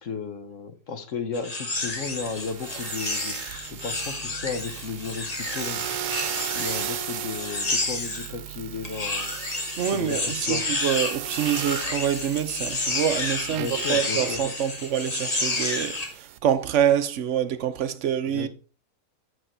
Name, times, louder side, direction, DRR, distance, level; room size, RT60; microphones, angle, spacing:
voice 1, 0.0-3.4 3.7-5.8 6.5-9.4 9.9-10.8 13.5-14.4 18.3-18.5, left 5 dB, 55° left, 1.2 m, -34 dB
sound 1, 1.3-8.3 8.8-16.1, left 2 dB, 25° left, 1.3 m, -30 dB
sound 2, 1.8-16.4, right 10 dB, 85° right, 1.2 m, -37 dB
voice 2, 9.8-18.5, right 9 dB, 60° right, 0.9 m, -26 dB
7.1 x 6.3 x 4.4 m
omnidirectional pair, 1.7 m